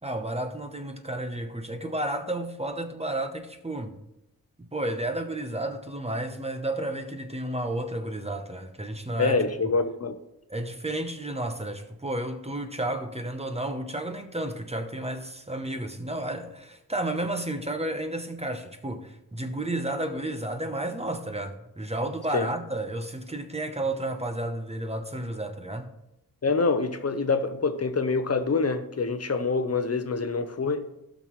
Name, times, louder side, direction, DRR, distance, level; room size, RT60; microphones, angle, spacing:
voice 1, 0.0-4.0 4.6-9.4 10.5-25.9, right 1 dB, 20° right, 0.8 m, -32 dB
voice 2, 9.2-10.2 22.3-22.5 26.4-30.9, left 4 dB, 45° left, 0.7 m, -26 dB
16.0 x 6.0 x 3.1 m
wide cardioid pair, 105°, 36 cm